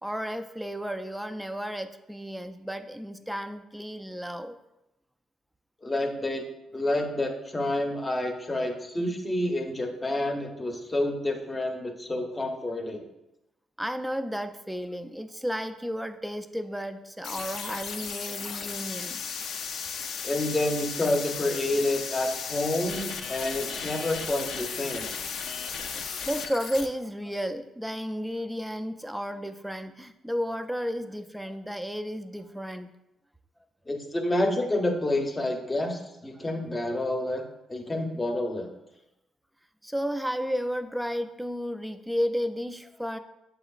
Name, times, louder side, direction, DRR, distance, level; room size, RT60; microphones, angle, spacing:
voice 1, 0.0-4.6 13.8-19.2 25.9-32.9 36.4-36.5 39.8-43.2, equal, 5° right, 8 dB, 0.3 m, -33 dB
voice 2, 5.8-6.4 6.7-13.0 20.2-25.1 33.9-37.4 37.7-38.7, left 1 dB, 20° left, 3 dB, 0.7 m, -28 dB
sound 1, 17.2-26.9, left 6 dB, 70° left, 0.4 m, -35 dB
7.3 x 2.9 x 2.4 m, 0.88 s
cardioid pair, 90°, 0 cm